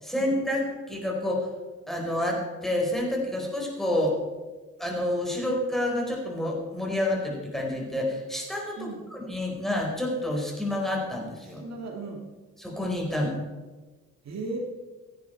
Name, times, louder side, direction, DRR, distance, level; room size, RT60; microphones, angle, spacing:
voice 1, 0.0-1.5 1.9-4.2 4.8-11.6 12.6-13.4, left 1 dB, ahead, -2 dB, 4.5 m, -29 dB
voice 2, 11.6-12.2 14.2-14.6, right 3 dB, 60° right, 1 dB, 2.2 m, -36 dB
15.5 x 10.5 x 4.5 m, 1.3 s
cardioid pair, 90°, 30 cm